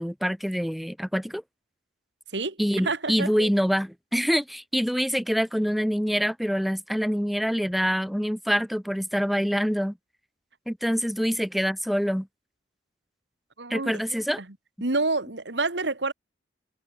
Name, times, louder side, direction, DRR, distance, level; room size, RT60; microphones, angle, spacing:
voice 1, 0.0-1.4 2.6-10.0 10.7-12.3 13.7-14.4, equal, ahead, 1.6 m, -25 dB
voice 2, 2.8-3.5 13.6-13.9 14.8-16.1, right 3 dB, 75° right, 2.1 m, -27 dB
head